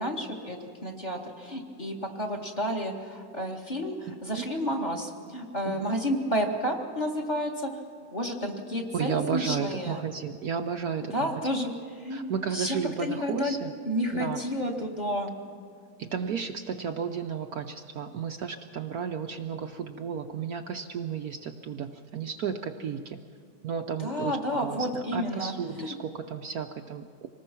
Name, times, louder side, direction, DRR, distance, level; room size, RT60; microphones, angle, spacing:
voice 1, 0.0-7.7 8.1-10.0 11.0-11.7 12.0-13.6 13.8-15.3 24.0-25.5 25.8-26.0, equal, 25° left, 1 dB, 2.1 m, -31 dB
voice 2, 5.6-6.0 8.9-11.3 12.1-13.7 14.1-14.4 16.0-23.2 23.6-27.3, right 7 dB, 65° right, 5 dB, 1.1 m, -33 dB
25.5 x 19.5 x 6.0 m, 2.1 s
omnidirectional pair, 2.0 m